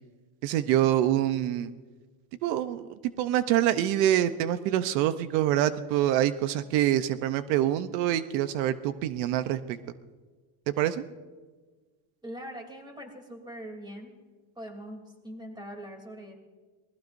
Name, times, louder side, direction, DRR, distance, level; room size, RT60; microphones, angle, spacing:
voice 1, 0.4-1.7 2.4-9.8 10.7-11.0, right 12 dB, 85° right, 12 dB, 0.9 m, -26 dB
voice 2, 12.2-14.2 14.5-16.3, equal, 10° right, 3 dB, 3.1 m, -42 dB
26.5 x 20.0 x 2.7 m, 1.4 s
cardioid pair, 145°, 50 cm